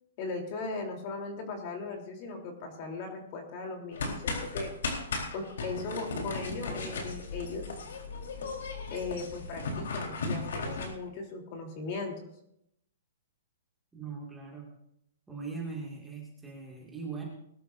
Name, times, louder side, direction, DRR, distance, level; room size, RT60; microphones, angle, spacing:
voice 1, 0.2-4.7 5.3-7.7 8.9-12.3, left 3 dB, 35° left, 2 dB, 3.4 m, -38 dB
sound 1, 3.9-10.9, left 3 dB, 75° left, 3.9 m, -36 dB
voice 2, 13.9-14.7 15.3-17.2, right 4 dB, 5° right, -3 dB, 2.2 m, -40 dB
21.5 x 12.5 x 2.6 m, 0.76 s
hypercardioid pair, 165°, 0 cm